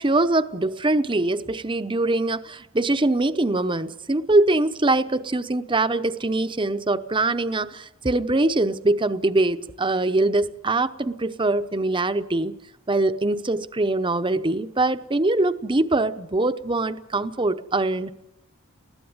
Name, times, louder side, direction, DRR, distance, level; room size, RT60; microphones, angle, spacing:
voice 1, 0.0-12.5 12.9-18.1, right 2 dB, 25° right, 11 dB, 0.8 m, -23 dB
20.5 x 15.0 x 9.6 m, 0.87 s
head